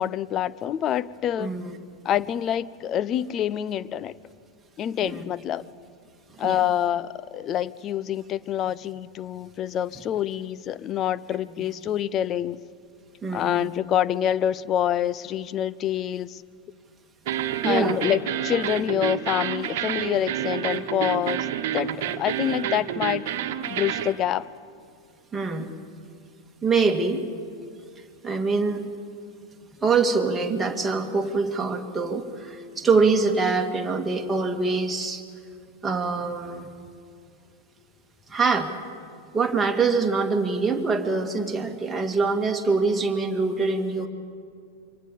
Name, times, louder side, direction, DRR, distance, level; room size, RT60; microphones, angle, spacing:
voice 1, 0.0-1.5 2.0-4.1 4.8-5.7 6.4-12.6 13.3-16.4 17.6-23.2 23.7-24.5, left 10 dB, 30° left, 17 dB, 0.7 m, -26 dB
voice 2, 1.4-1.8 5.0-5.2 6.4-6.6 13.2-13.7 17.6-18.0 25.3-25.7 26.6-27.2 28.2-28.9 29.8-35.2 35.8-36.7 38.3-38.7 39.3-44.1, right 4 dB, 10° right, 2 dB, 2.5 m, -24 dB
sound 1, 17.3-24.1, right 10 dB, 50° right, 1.5 m, -29 dB
27.0 x 24.5 x 7.4 m, 2.3 s
figure-of-eight pair, 90°, 0 cm